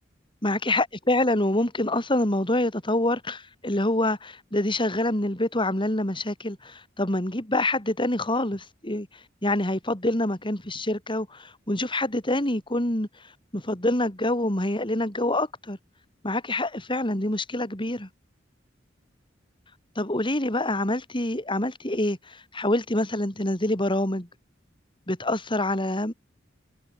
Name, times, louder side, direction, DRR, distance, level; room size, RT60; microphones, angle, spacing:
voice 1, 0.4-9.1 9.4-13.1 13.5-15.8 16.2-18.1 19.9-24.3 25.1-26.1, left 1 dB, 25° left, 5.0 m, -26 dB
head